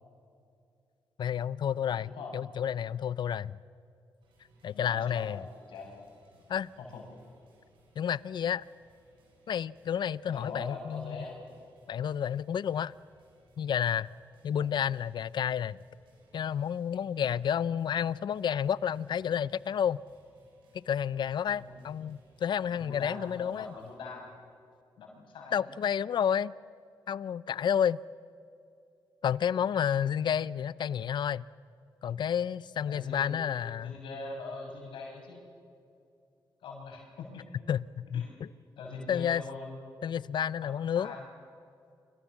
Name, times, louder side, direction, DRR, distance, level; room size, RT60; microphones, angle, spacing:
voice 1, 1.2-3.6 4.6-5.4 6.5-6.7 8.0-8.6 9.5-11.2 11.9-12.9 13.6-14.1 14.4-15.8 16.3-20.0 20.7-23.7 25.5-26.5 27.1-28.0 29.2-31.4 32.0-33.9 37.7-38.3 39.1-39.4 40.0-41.1, left 8 dB, 65° left, 0.6 m, -30 dB
voice 2, 2.0-2.3 4.7-6.1 6.8-7.0 10.2-11.5 14.5-14.7 21.5-21.8 22.7-24.3 25.0-25.7 32.9-33.3 33.8-35.4 36.6-37.4 38.1-38.3 38.8-39.8 40.8-41.2, left 3 dB, 80° left, 6.5 m, -42 dB
sound 1, 4.2-23.9, right 2 dB, 80° right, 6.9 m, -65 dB
29.5 x 25.0 x 7.3 m
supercardioid pair, 55°, 8 cm